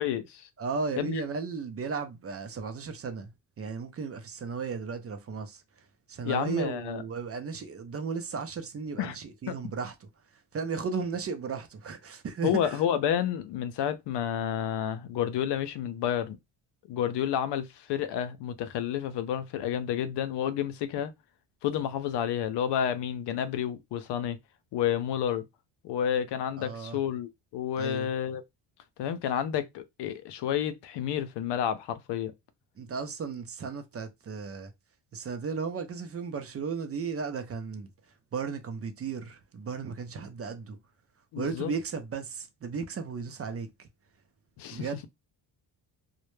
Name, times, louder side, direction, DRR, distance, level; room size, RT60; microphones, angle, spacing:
voice 1, 0.0-0.5 1.0-1.2 6.2-7.0 9.0-9.2 9.5-9.6 12.4-16.4 16.9-21.1 21.6-24.4 24.7-25.4 25.8-28.4 29.0-32.3 41.3-41.7 44.6-44.9, left 9 dB, 65° left, 0.5 m, -30 dB
voice 2, 0.6-3.3 3.6-5.6 6.1-9.9 10.5-12.8 26.6-27.0 27.8-28.1 32.8-34.7 35.1-37.9 38.3-40.8 41.4-43.9 44.7-45.1, right 5 dB, 30° right, 0.5 m, -35 dB
2.1 x 2.0 x 3.1 m
cardioid pair, 80°, 46 cm